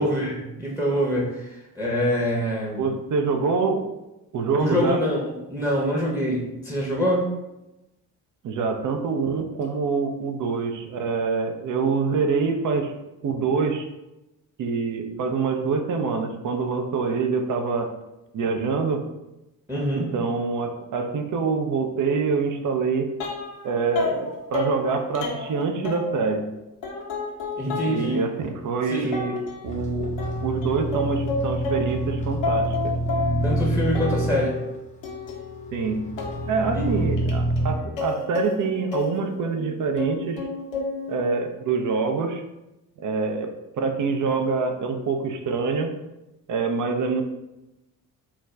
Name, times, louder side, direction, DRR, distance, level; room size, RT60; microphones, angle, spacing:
voice 1, 0.0-2.9 4.6-7.3 19.7-20.1 27.6-28.2 28.9-29.1 33.4-34.6 36.7-36.8, equal, 5° right, -4 dB, 0.8 m, -25 dB
voice 2, 2.8-3.8 4.3-5.0 8.4-13.0 13.2-13.9 14.6-17.9 18.3-19.0 20.0-23.1 23.6-26.4 27.9-29.4 29.6-30.1 30.4-32.9 35.7-36.0 36.5-40.5 41.1-42.4 43.0-45.9 46.5-47.2, right 4 dB, 40° right, 5 dB, 0.5 m, -25 dB
sound 1, 23.2-23.7 23.9-26.4 26.8-28.0 28.4-28.5 29.1-29.7 30.2-32.1 32.4-33.6 33.9-34.7 35.0-39.7 40.0-41.2, left 3 dB, 65° left, 0.8 m, -31 dB
sound 2, 29.6-37.7, right 1 dB, 15° left, 0.5 m, -27 dB
2.5 x 2.2 x 3.2 m, 0.96 s
hypercardioid pair, 45°, 49 cm